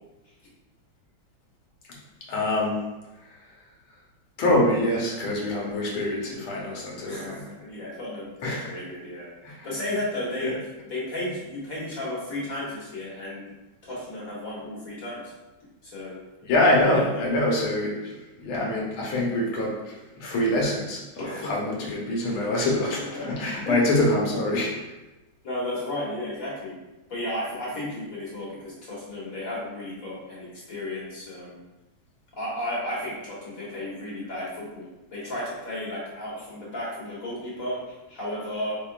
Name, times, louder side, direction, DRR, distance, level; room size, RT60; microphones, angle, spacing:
voice 1, 2.3-2.8 4.4-7.4 8.4-8.7 9.4-9.7 10.4-10.5 16.4-24.7, left 1 dB, 85° left, -3 dB, 1.9 m, -25 dB
voice 2, 7.1-9.3 9.6-10.5 10.9-13.5 13.8-15.3 15.8-16.2 16.9-17.3 21.2-21.5 22.2-22.4 23.0-23.9 25.4-26.8 27.1-31.6 32.3-34.9 35.1-38.8, left 1 dB, 45° left, -6 dB, 1.7 m, -33 dB
5.2 x 3.6 x 2.4 m, 1.0 s
omnidirectional pair, 2.2 m